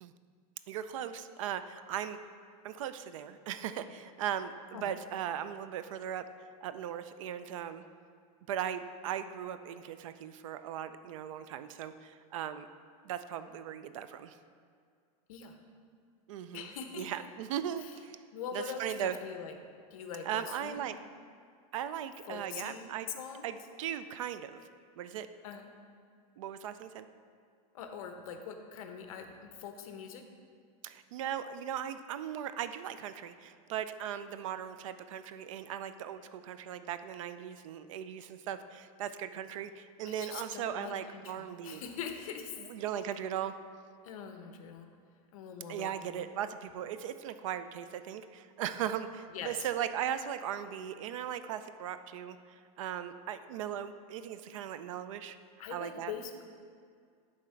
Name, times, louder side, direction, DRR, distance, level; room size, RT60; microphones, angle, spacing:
voice 1, 0.7-2.2 2.6-6.2 6.6-7.8 8.5-12.7 13.0-14.4 16.3-16.7 16.9-18.2 18.5-19.2 20.2-21.0 21.7-23.1 23.4-24.6 25.0-25.3 26.4-27.1 30.8-41.8 42.6-43.5 45.7-55.4 55.7-56.1, right 10 dB, 55° right, 12 dB, 0.4 m, -38 dB
voice 2, 16.5-17.1 17.8-17.9 18.3-19.5 19.9-20.8 22.3-23.5 25.4-25.7 27.7-30.2 40.0-42.6 44.0-44.9 45.3-46.3 49.3-49.7 55.6-56.4, left 6 dB, 60° left, 5 dB, 0.8 m, -43 dB
10.5 x 3.7 x 4.4 m, 2.2 s
supercardioid pair, 170°, 20 cm